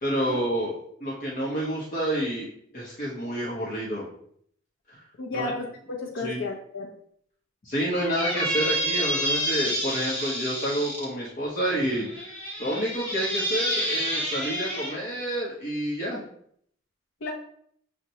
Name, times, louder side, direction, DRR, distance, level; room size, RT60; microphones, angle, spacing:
voice 1, 0.0-0.7 1.0-2.5 2.7-4.1 4.9-5.0 5.3-5.5 6.2-6.4 7.6-12.0 12.6-16.2, right 1 dB, 45° left, -6 dB, 0.9 m, -29 dB
voice 2, 5.2-6.9 17.2-17.3, left 3 dB, 65° left, -1 dB, 0.6 m, -32 dB
Squeak, 8.0-11.0 11.9-14.9, equal, 10° left, 1.1 m, -29 dB
6.4 x 2.2 x 2.8 m, 0.65 s
head